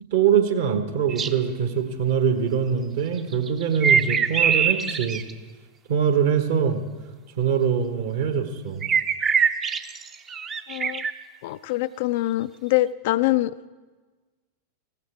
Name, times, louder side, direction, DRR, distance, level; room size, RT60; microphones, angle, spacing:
voice 1, 0.1-5.2 5.9-6.8 7.4-8.8, right 7 dB, 55° right, 8 dB, 1.4 m, -23 dB
sound 1, 1.1-1.3 3.2-5.3 8.8-11.1, right 6 dB, 25° right, 0.6 m, -23 dB
voice 2, 10.7-11.0 11.4-13.7, left 16 dB, 50° left, 14 dB, 0.4 m, -24 dB
18.0 x 15.5 x 3.6 m, 1.3 s
figure-of-eight pair, 90°, 0 cm